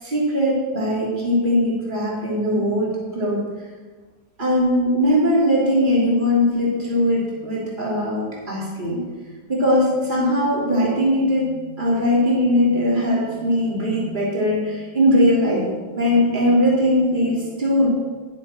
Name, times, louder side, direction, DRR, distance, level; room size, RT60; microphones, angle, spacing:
voice 1, 0.0-3.4 4.4-9.1 9.5-17.9, left 1 dB, 25° right, -6 dB, 3.3 m, -20 dB
11.0 x 10.0 x 4.4 m, 1.3 s
omnidirectional pair, 2.1 m